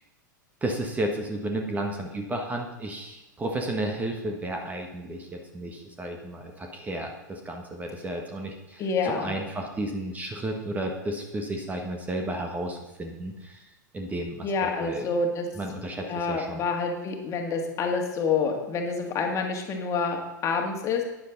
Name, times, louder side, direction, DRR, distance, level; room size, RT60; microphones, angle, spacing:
voice 1, 0.6-8.8 9.2-13.6 13.9-15.1 15.6-16.6, right 1 dB, 15° right, 3 dB, 1.5 m, -32 dB
voice 2, 8.8-9.3 14.4-15.5 16.1-21.0, left 4 dB, 30° left, 2 dB, 2.1 m, -27 dB
12.5 x 9.9 x 4.0 m, 1.0 s
figure-of-eight pair, 95°, 11 cm